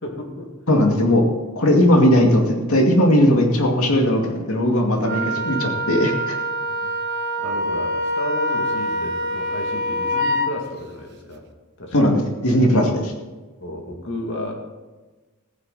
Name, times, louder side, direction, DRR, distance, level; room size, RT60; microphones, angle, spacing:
voice 1, 0.0-0.5 6.7-6.9 7.4-11.4 11.8-12.1 13.6-14.5, left 1 dB, 60° left, 1 dB, 2.3 m, -33 dB
voice 2, 0.7-1.2 1.6-6.4 11.9-13.1, left 1 dB, 85° left, 2 dB, 2.3 m, -18 dB
Wind instrument woodwind instrument, 5.0-10.5, equal, 50° right, 0.9 m, -25 dB
14.5 x 9.6 x 4.1 m, 1.2 s
head